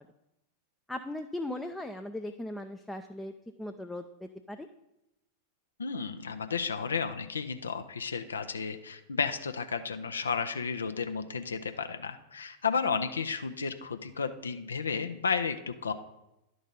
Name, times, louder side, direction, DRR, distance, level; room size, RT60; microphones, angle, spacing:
voice 1, 0.9-3.3 3.6-4.7, left 1 dB, 5° left, 5 dB, 0.4 m, -38 dB
voice 2, 5.8-15.9, left 5 dB, 70° left, 8 dB, 0.5 m, -32 dB
11.0 x 3.9 x 5.2 m, 0.91 s
figure-of-eight pair, 90°, 0 cm